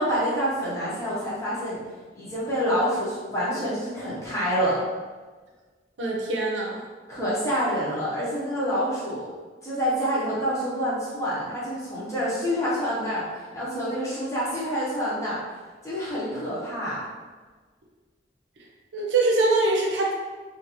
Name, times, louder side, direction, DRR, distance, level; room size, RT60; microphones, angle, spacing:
voice 1, 0.0-1.8 2.1-4.8 7.1-9.3 9.6-13.3 13.5-15.4 15.8-17.1, equal, 15° left, -9 dB, 0.8 m, -27 dB
voice 2, 6.0-6.8 18.9-20.1, right 2 dB, 80° right, -2 dB, 0.6 m, -23 dB
2.5 x 2.5 x 2.9 m, 1.4 s
head